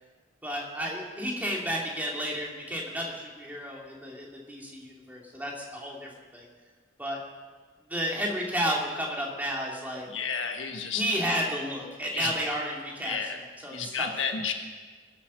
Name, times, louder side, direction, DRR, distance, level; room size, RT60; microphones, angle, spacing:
voice 1, 0.4-6.5 7.0-7.2 7.9-10.1 11.0-13.3 13.6-14.1, equal, 10° right, -3 dB, 2.5 m, -32 dB
voice 2, 10.1-11.0 12.1-12.3 13.0-13.4 13.7-14.5, left 6 dB, 70° left, 4 dB, 1.4 m, -31 dB
22.5 x 8.4 x 6.3 m, 1.5 s
head